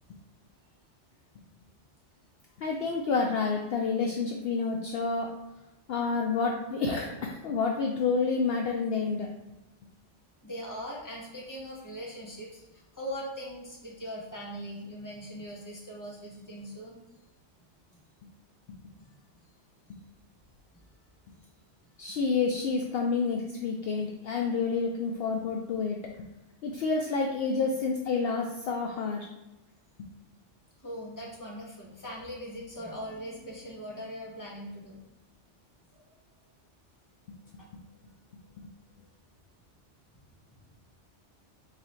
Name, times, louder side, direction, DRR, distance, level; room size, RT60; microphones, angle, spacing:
voice 1, 2.6-5.3 5.9-9.3 22.0-26.0 26.6-29.3, left 4 dB, 65° left, 1 dB, 0.7 m, -29 dB
voice 2, 10.4-17.2 19.0-19.1 30.8-35.0 35.9-36.0 37.6-37.7, equal, 15° left, -4 dB, 1.0 m, -41 dB
3.8 x 3.1 x 4.3 m, 0.99 s
omnidirectional pair, 1.2 m